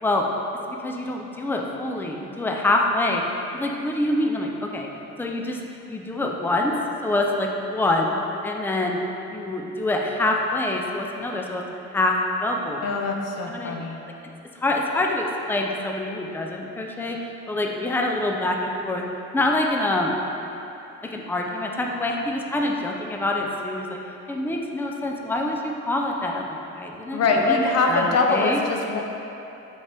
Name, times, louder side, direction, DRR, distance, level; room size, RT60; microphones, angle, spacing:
voice 1, 0.8-3.2 3.5-4.9 5.2-5.6 5.9-6.7 7.0-8.2 8.4-9.0 9.3-11.6 11.9-12.8 13.5-13.8 14.6-19.0 19.3-20.2 21.0-24.0 24.3-28.6, left 2 dB, 5° left, 1 dB, 0.5 m, -25 dB
voice 2, 12.8-14.0 27.1-29.0, left 3 dB, 55° left, 2 dB, 0.7 m, -23 dB
6.1 x 4.5 x 3.4 m, 2.9 s
cardioid pair, 90°, 30 cm